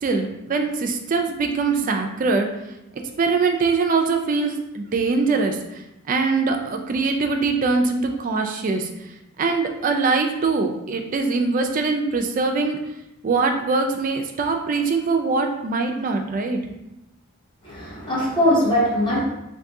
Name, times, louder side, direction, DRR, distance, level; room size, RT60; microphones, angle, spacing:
voice 1, 0.0-2.5 3.2-12.8 13.2-16.6, right 4 dB, 40° right, 5 dB, 0.3 m, -23 dB
voice 2, 17.6-19.2, equal, 20° left, -7 dB, 0.9 m, -21 dB
2.6 x 2.6 x 3.5 m, 0.89 s
head